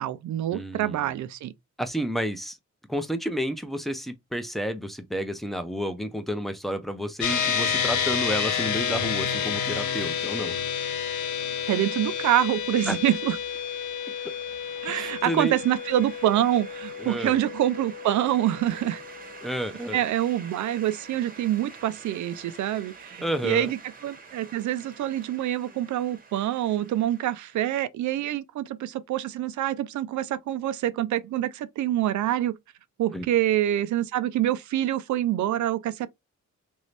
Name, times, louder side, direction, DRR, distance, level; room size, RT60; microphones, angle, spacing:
voice 1, 0.0-1.5 11.7-13.4 14.8-19.0 19.9-32.6 33.0-36.1, right 12 dB, 80° right, 0.5 m, -26 dB
voice 2, 0.5-1.2 1.8-2.6 2.9-10.6 12.9-13.0 14.9-15.6 17.0-17.4 19.4-20.0 23.2-23.7 33.1-33.3, equal, ahead, 0.6 m, -30 dB
sound 1, 7.2-20.8, left 7 dB, 75° left, 0.7 m, -30 dB
sound 2, 8.2-27.7, right 4 dB, 30° right, 0.9 m, -48 dB
3.0 x 2.7 x 3.2 m
cardioid pair, 115°, 29 cm